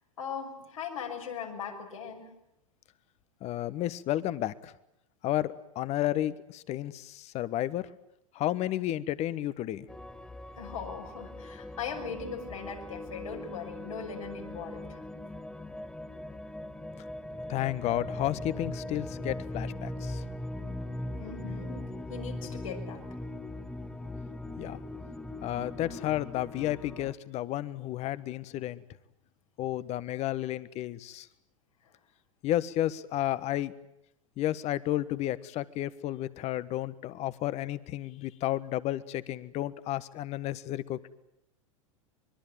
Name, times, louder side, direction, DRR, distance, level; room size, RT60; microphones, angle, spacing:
voice 1, 0.2-2.3 10.5-15.0 21.1-23.0 31.8-31.9, left 6 dB, 80° left, 1 dB, 6.4 m, -39 dB
voice 2, 3.4-4.7 5.2-7.9 8.3-9.9 17.5-20.2 24.6-24.8 25.4-28.8 29.6-31.3 32.4-33.7 34.4-41.0, left 13 dB, 40° left, 16 dB, 1.4 m, -32 dB
sound 1, 9.9-27.1, left 1 dB, 5° left, 1.5 m, -40 dB
25.0 x 22.0 x 9.2 m, 0.80 s
hypercardioid pair, 95°, 17 cm